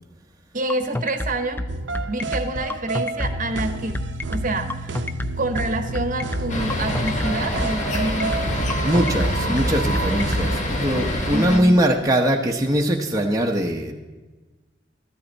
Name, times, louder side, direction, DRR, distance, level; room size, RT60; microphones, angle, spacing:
voice 1, 0.5-1.6 2.1-4.0 4.3-5.0 5.4-8.4 11.3-11.8, right 2 dB, 45° right, 8 dB, 1.0 m, -27 dB
sound 1, 0.7-10.5, left 1 dB, 10° left, 0.4 m, -28 dB
sound 2, 1.7-10.6, right 2 dB, 75° right, 0.8 m, -29 dB
sound 3, 6.5-11.6, left 1 dB, 40° left, 1.4 m, -26 dB
voice 2, 8.8-13.9, equal, 20° right, 0 dB, 0.8 m, -21 dB
13.5 x 13.5 x 4.0 m, 1.2 s
head